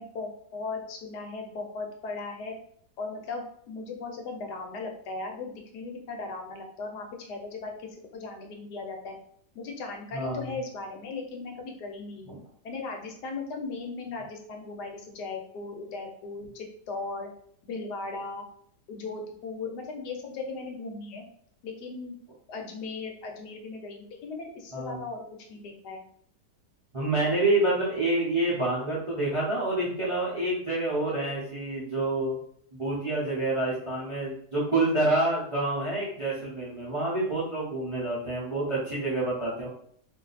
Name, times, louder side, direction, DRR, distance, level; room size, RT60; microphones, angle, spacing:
voice 1, 0.0-2.5 3.0-9.1 9.5-12.3 12.6-17.3 17.6-18.4 18.9-21.2 21.6-22.2 22.5-25.2 25.5-26.0, left 3 dB, 75° left, 2 dB, 1.2 m, -37 dB
voice 2, 10.1-10.5 12.3-12.4 24.7-25.0 26.9-32.4 32.8-39.7, right 2 dB, 35° right, -7 dB, 0.5 m, -27 dB
2.7 x 2.6 x 3.9 m, 0.62 s
omnidirectional pair, 1.9 m